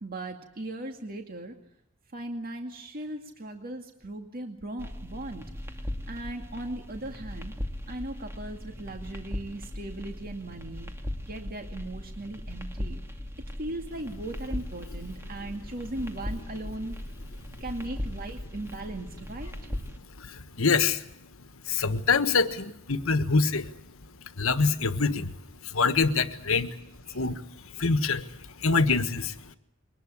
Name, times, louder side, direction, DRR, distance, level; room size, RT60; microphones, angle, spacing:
voice 1, 0.0-1.5 2.1-5.5 6.1-7.5 7.9-10.9 11.2-13.0 13.6-16.9 17.6-19.5 26.5-26.6 27.1-27.2, right 1 dB, 45° right, 4 dB, 2.2 m, -38 dB
sound 1, 4.8-20.0, left 1 dB, 10° right, 2.4 m, -38 dB
voice 2, 20.2-21.0 21.7-23.7 24.4-25.3 25.7-26.7 27.1-27.4 27.8-28.2 28.6-29.3, left 4 dB, 65° left, 11 dB, 1.4 m, -25 dB
23.0 x 19.5 x 9.8 m, 0.77 s
head